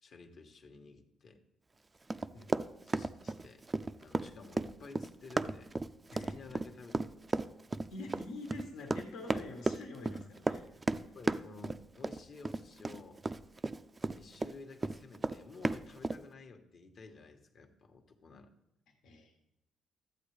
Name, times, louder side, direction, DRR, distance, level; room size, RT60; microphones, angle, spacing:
voice 1, 0.0-1.4 2.8-3.6 4.0-5.7 6.3-7.0 7.3-7.4 11.0-13.2 14.1-18.5, left 4 dB, 55° left, 5 dB, 1.2 m, -52 dB
Run, 2.1-14.5 14.8-16.2, right 3 dB, 25° right, 0.3 m, -34 dB
voice 2, 7.9-10.6 19.0-19.3, left 2 dB, 85° left, 1 dB, 1.5 m, -45 dB
12.5 x 8.1 x 3.3 m, 0.81 s
cardioid pair, 90°, 0 cm